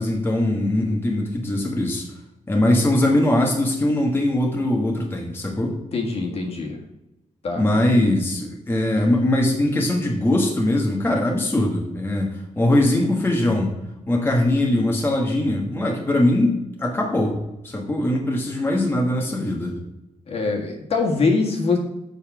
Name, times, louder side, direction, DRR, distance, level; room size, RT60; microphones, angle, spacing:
voice 1, 0.0-2.1 2.5-5.8 7.6-13.7 14.1-17.4 17.6-19.8, left 1 dB, 20° left, 0 dB, 1.2 m, -21 dB
voice 2, 5.9-6.8 7.4-7.6 20.3-21.8, left 4 dB, 55° left, 1 dB, 1.7 m, -23 dB
7.1 x 5.3 x 5.9 m, 0.92 s
wide cardioid pair, 145°, 12 cm